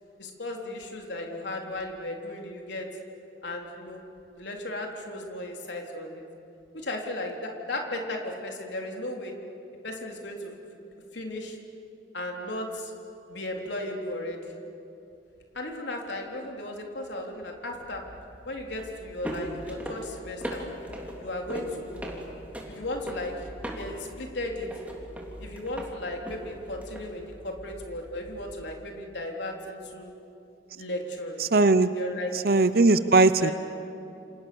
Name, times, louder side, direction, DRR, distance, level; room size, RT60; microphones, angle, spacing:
voice 1, 0.2-2.9 3.4-4.0 4.3-6.2 6.7-9.3 9.8-10.5 10.8-11.6 12.1-12.9 13.3-14.5 15.5-18.0 18.5-20.6 21.1-22.1 22.7-23.5 23.8-24.7 25.4-30.1 30.8-31.5 31.9-32.3 32.7-33.0 33.4-33.5, left 1 dB, 85° left, 1 dB, 3.7 m, -35 dB
sound 1, 17.7-28.7, equal, 10° right, 3.5 m, -40 dB
voice 2, 31.4-31.9 32.3-33.5, right 3 dB, 55° right, 12 dB, 0.8 m, -19 dB
29.0 x 27.5 x 7.1 m, 2.8 s
head